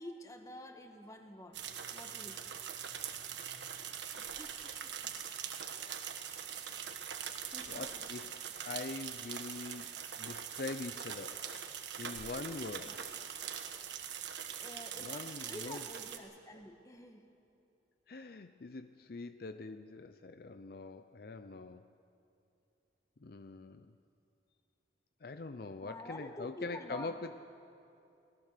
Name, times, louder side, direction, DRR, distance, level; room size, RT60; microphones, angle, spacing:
voice 1, 0.0-1.6 1.9-2.4 12.8-13.0 14.0-14.1 14.5-17.2 25.8-27.2, left 1 dB, 20° left, 5 dB, 1.5 m, -48 dB
sound 1, 1.1-1.5 3.4-3.5 4.2-5.3 5.8-6.0 7.3-9.2 9.5-9.8 10.8-10.9 12.1-14.4 14.8-15.1, equal, 5° right, 1.1 m, -57 dB
sound 2, 1.5-16.2, right 8 dB, 80° right, 1.4 m, -43 dB
voice 2, 7.7-11.5 12.0-13.0 15.0-15.8 18.1-21.9 23.2-23.9 25.2-27.4, left 3 dB, 55° left, 10 dB, 0.5 m, -44 dB
25.0 x 17.5 x 6.7 m, 2.7 s
head